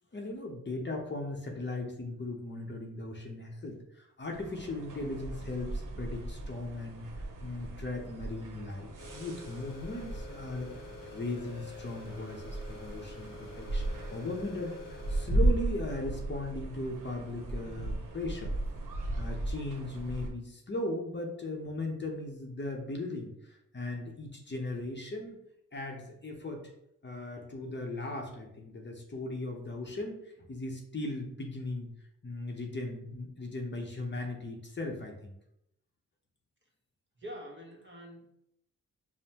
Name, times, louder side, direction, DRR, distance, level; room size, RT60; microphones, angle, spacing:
voice 1, 0.1-18.6 19.2-25.4 25.7-26.6 27.0-31.9 32.2-35.3, left 2 dB, 35° left, 1 dB, 0.8 m, -38 dB
sound 1, 4.3-20.3, right 2 dB, 75° right, 0.8 m, -36 dB
sound 2, 9.0-15.3, left 4 dB, 80° left, 0.8 m, -48 dB
voice 2, 37.2-38.3, equal, 35° right, -1 dB, 1.3 m, -45 dB
5.2 x 2.2 x 2.9 m, 0.79 s
cardioid pair, 65°, 32 cm